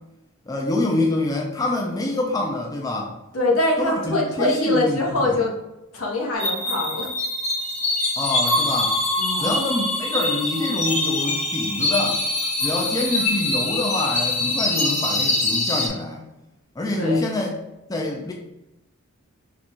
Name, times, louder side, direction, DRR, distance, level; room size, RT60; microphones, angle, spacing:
voice 1, 0.5-3.2 3.8-5.4 8.2-9.0 9.4-12.2 12.6-16.3 16.8-17.5 17.9-18.3, left 2 dB, 15° left, 0 dB, 0.4 m, -25 dB
voice 2, 3.3-5.5 5.9-7.1 9.2-9.5 16.9-17.2, left 2 dB, 80° left, -2 dB, 1.2 m, -23 dB
sound 1, 6.4-15.9, left 2 dB, 35° left, 1.0 m, -24 dB
4.0 x 2.3 x 4.4 m, 0.93 s
head